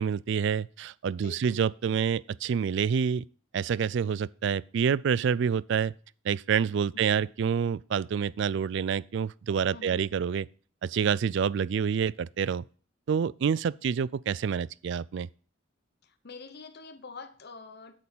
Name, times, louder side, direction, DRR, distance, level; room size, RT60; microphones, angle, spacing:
voice 1, 0.0-3.2 3.5-5.9 6.2-10.5 10.8-12.6 13.1-15.3, right 7 dB, 60° right, 0.3 m, -27 dB
voice 2, 1.2-1.6 6.9-7.3 9.7-10.1 16.0-18.0, left 3 dB, 55° left, 1.0 m, -46 dB
8.4 x 6.7 x 5.5 m
head